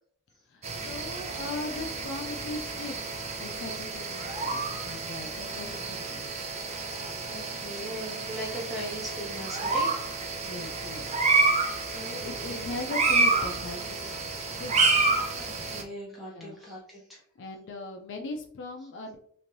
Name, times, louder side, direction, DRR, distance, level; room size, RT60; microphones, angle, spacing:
voice 1, 0.5-3.0 3.4-6.3 10.4-11.1 11.9-14.3 14.6-14.8 16.3-16.6 17.4-19.2, left 2 dB, 55° left, 4 dB, 0.4 m, -39 dB
sound 1, 0.6-15.8, right 3 dB, 30° right, 0.4 m, -29 dB
voice 2, 7.3-9.9 12.1-12.6 15.4-17.2, equal, ahead, -5 dB, 1.2 m, -39 dB
3.1 x 2.5 x 2.6 m, 0.63 s
head